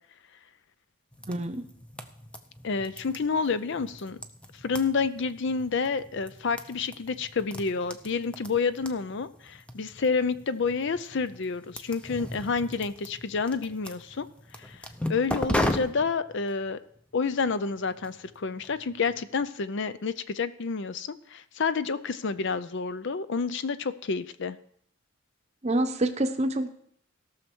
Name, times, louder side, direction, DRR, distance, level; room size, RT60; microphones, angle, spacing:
sound 1, 1.1-19.4, left 1 dB, 5° left, 0.5 m, -38 dB
voice 1, 1.3-1.6 25.6-26.7, right 1 dB, 30° right, 8 dB, 0.8 m, -26 dB
voice 2, 2.6-4.2 4.6-14.3 14.6-16.8 17.1-24.6, left 5 dB, 55° left, 14 dB, 0.5 m, -29 dB
17.0 x 6.4 x 4.5 m, 0.66 s
head